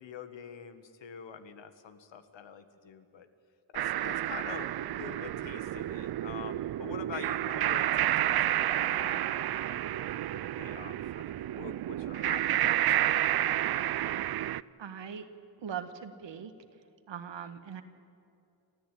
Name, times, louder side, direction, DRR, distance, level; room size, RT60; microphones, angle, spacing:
voice 1, 0.0-3.3 3.7-14.1, left 7 dB, 80° left, 9 dB, 1.7 m, -46 dB
sound 1, 3.7-14.6, right 13 dB, 60° right, 0.5 m, -30 dB
voice 2, 14.8-15.3 15.6-16.5 17.1-17.8, right 8 dB, 75° right, 9 dB, 1.7 m, -40 dB
29.5 x 13.5 x 9.3 m, 2.6 s
wide cardioid pair, 110°, 44 cm